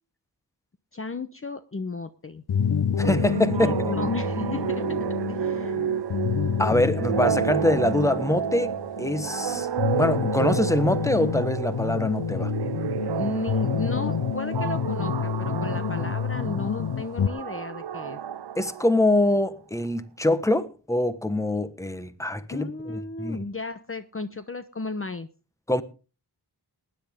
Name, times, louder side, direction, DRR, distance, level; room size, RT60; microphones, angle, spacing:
voice 1, 0.9-2.4 3.6-5.0 5.3-5.9 13.1-18.2 22.5-25.3, left 3 dB, 35° left, 0.9 m, -34 dB
sound 1, 2.5-17.3, left 7 dB, 65° left, 0.7 m, -28 dB
voice 2, 3.0-3.9 6.6-9.7 9.9-12.5 18.6-23.4 25.7-25.8, left 1 dB, 5° left, 1.3 m, -24 dB
sound 2, 3.0-19.4, right 10 dB, 75° right, 0.7 m, -31 dB
19.5 x 10.5 x 3.6 m
cardioid pair, 55°, 40 cm